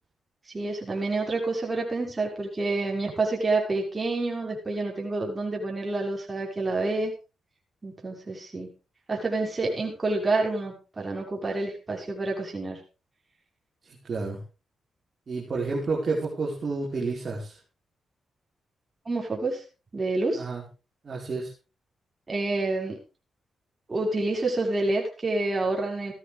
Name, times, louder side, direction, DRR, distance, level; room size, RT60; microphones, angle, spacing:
voice 1, 0.5-7.1 7.8-8.7 9.1-12.8 19.1-19.6 19.9-20.4 22.3-23.0 23.9-26.1, right 2 dB, 30° right, -1 dB, 6.0 m, -28 dB
voice 2, 13.9-14.4 15.3-17.5 20.4-20.6 21.0-21.5, right 3 dB, 50° right, -4 dB, 5.0 m, -30 dB
16.0 x 13.0 x 3.6 m, 0.32 s
cardioid pair, 65°, 0 cm